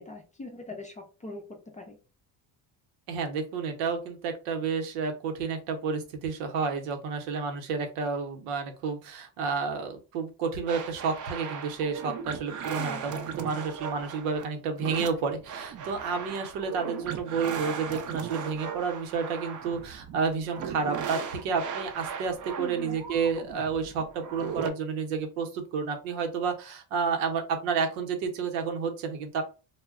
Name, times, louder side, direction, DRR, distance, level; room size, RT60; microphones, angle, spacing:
voice 1, 0.0-2.0 12.8-13.1 22.6-23.0, left 2 dB, 15° left, 2 dB, 0.4 m, -42 dB
voice 2, 3.1-29.4, right 5 dB, 90° right, 5 dB, 0.9 m, -30 dB
sound 1, 10.7-24.7, right 7 dB, 40° right, 0.5 m, -37 dB
2.2 x 2.0 x 3.5 m, 0.33 s
cardioid pair, 110°, 49 cm